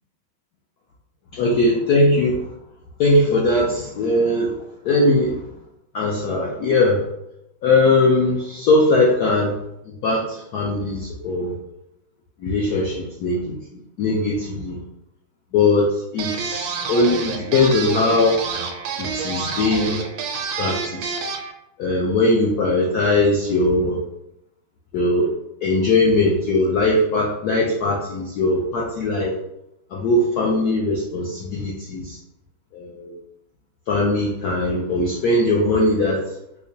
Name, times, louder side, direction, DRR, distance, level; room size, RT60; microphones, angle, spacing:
voice 1, 1.3-2.5 3.0-4.6 4.8-5.4 5.9-7.1 7.6-11.5 12.4-14.8 15.5-18.4 19.0-20.0 20.6-21.3 21.8-24.0 24.9-25.3 25.6-29.3 29.9-32.2 32.7-33.1 33.9-36.3, left 2 dB, 85° left, -3 dB, 0.8 m, -20 dB
sound 1, 16.2-21.5, right 5 dB, 90° right, 1.5 m, -28 dB
4.7 x 2.2 x 2.6 m, 0.83 s
omnidirectional pair, 2.3 m